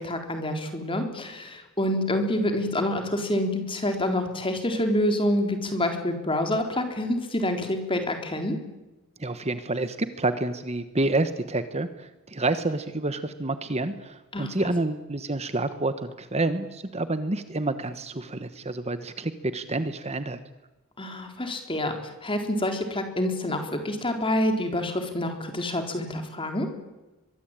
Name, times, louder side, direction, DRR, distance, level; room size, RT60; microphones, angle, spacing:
voice 1, 0.0-8.6 14.3-14.5 21.0-26.7, left 1 dB, 25° left, 5 dB, 3.9 m, -27 dB
voice 2, 9.2-20.4, right 2 dB, 30° right, 11 dB, 1.2 m, -28 dB
23.5 x 23.0 x 9.0 m, 1.1 s
head